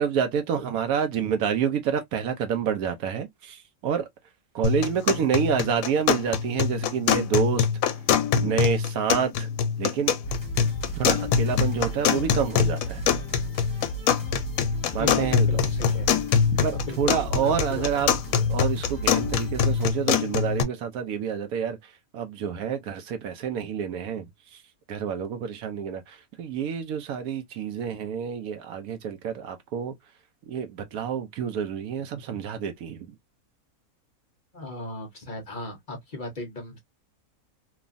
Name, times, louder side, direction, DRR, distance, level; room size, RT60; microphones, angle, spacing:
voice 1, 0.0-4.1 4.5-7.7 8.4-9.5 9.8-10.1 11.0-13.0 14.9-15.6 16.6-24.2 24.5-24.6 24.9-29.9 30.5-33.1, right 7 dB, 80° right, 1.1 m, -28 dB
sound 1, 4.6-20.6, left 7 dB, 75° left, 1.0 m, -24 dB
sound 2, 10.2-19.9, right 2 dB, 15° left, 1.1 m, -36 dB
voice 2, 15.0-16.2 16.7-17.9 34.5-36.8, left 2 dB, 45° left, 0.7 m, -36 dB
3.1 x 2.3 x 2.4 m
omnidirectional pair, 1.5 m